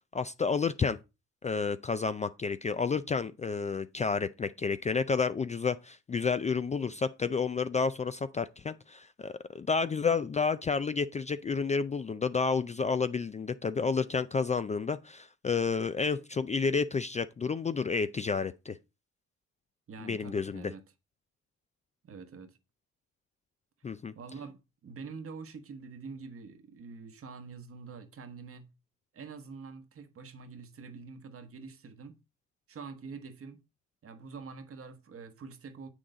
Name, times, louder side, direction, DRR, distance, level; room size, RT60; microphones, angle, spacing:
voice 1, 0.1-1.0 1.4-18.8 20.0-20.7 23.8-24.1, left 5 dB, 25° left, 0.4 m, -30 dB
voice 2, 19.9-20.8 22.0-22.6 24.1-28.7 29.1-32.1 32.7-33.6 34.0-35.9, right 5 dB, 50° right, 1.2 m, -46 dB
7.8 x 6.3 x 3.8 m
cardioid pair, 90°, 30 cm